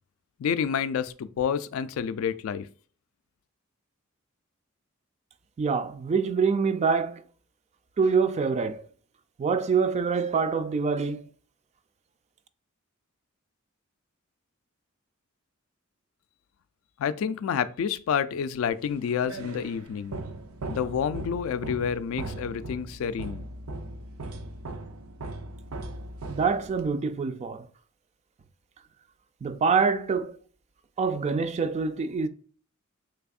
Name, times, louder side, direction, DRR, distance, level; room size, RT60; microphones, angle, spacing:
voice 1, 0.4-2.7 17.0-20.2 20.7-23.4, left 7 dB, 75° left, 0.3 m, -29 dB
voice 2, 5.6-7.2 8.0-8.9 9.4-11.2 26.3-27.7 29.4-30.4 31.0-32.3, right 5 dB, 35° right, 0.3 m, -25 dB
sound 1, 18.8-27.0, right 2 dB, 90° right, 0.5 m, -39 dB
3.4 x 3.3 x 2.3 m
head